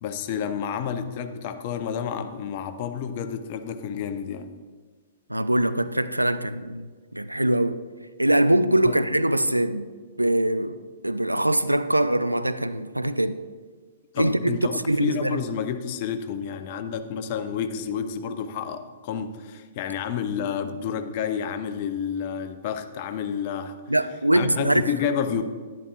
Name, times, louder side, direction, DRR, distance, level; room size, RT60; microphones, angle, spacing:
voice 1, 0.0-4.5 8.9-9.0 14.1-23.8 24.3-25.4, left 7 dB, 40° left, 0.7 m, -30 dB
voice 2, 5.3-6.9 7.1-7.8 8.2-9.9 10.2-10.8 11.0-13.4 14.2-15.4 23.9-24.8, right 1 dB, 85° right, 0.4 m, -23 dB
11.0 x 10.5 x 2.4 m
figure-of-eight pair, 115°, 0 cm